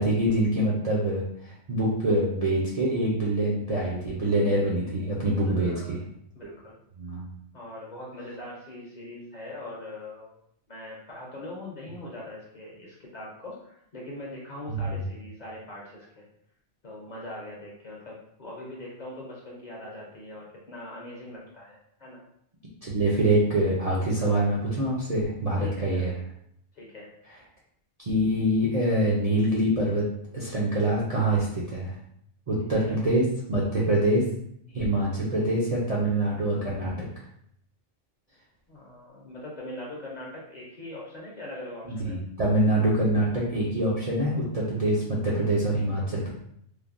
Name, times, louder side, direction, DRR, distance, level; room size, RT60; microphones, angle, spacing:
voice 1, 0.0-6.0 6.4-6.5 7.0-7.3 14.7-14.9 22.8-26.1 28.0-30.0 30.3-31.9 32.5-34.2 34.7-37.1 41.9-46.3, right 1 dB, 50° right, -6 dB, 0.4 m, -25 dB
voice 2, 5.4-6.0 6.3-6.8 7.5-10.4 10.7-16.3 16.8-22.2 25.6-26.2 26.7-27.2 32.8-33.0 38.7-42.2, left 1 dB, 45° left, -4 dB, 0.6 m, -41 dB
3.2 x 2.1 x 2.4 m, 0.71 s
omnidirectional pair, 1.2 m